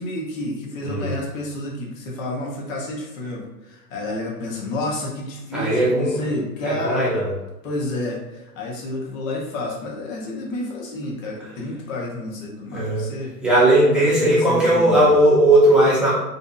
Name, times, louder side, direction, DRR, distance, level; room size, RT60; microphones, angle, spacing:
voice 1, 0.0-7.1 7.6-13.3 14.0-15.1, left 2 dB, 55° left, -2 dB, 0.9 m, -30 dB
voice 2, 0.8-1.1 5.5-6.2 6.6-7.3 11.4-11.5 12.7-13.1 13.4-16.1, right 1 dB, ahead, -10 dB, 0.4 m, -17 dB
2.7 x 2.6 x 2.3 m, 0.95 s
hypercardioid pair, 110°, 48 cm